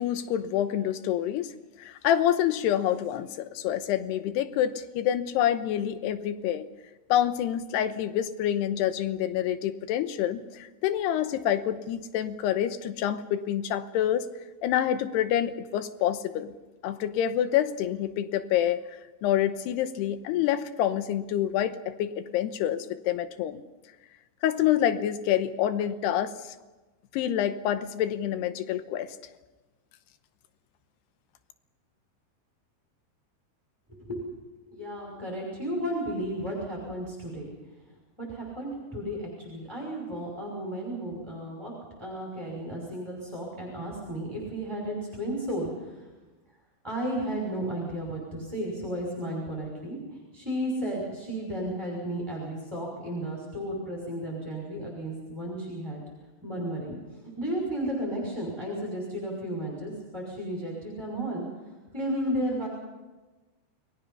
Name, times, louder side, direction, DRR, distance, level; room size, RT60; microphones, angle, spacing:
voice 1, 0.0-1.5 1.8-6.7 7.1-14.3 14.6-16.5 16.8-23.6 24.4-26.5 27.1-29.2, left 11 dB, 80° left, 11 dB, 2.9 m, -27 dB
voice 2, 33.9-34.3 34.6-37.5 38.2-41.7 42.0-46.0 46.8-56.0 56.4-57.0 57.4-61.4 61.9-62.7, right 1 dB, 5° right, -3 dB, 5.2 m, -33 dB
30.0 x 20.0 x 5.6 m, 1.2 s
omnidirectional pair, 5.0 m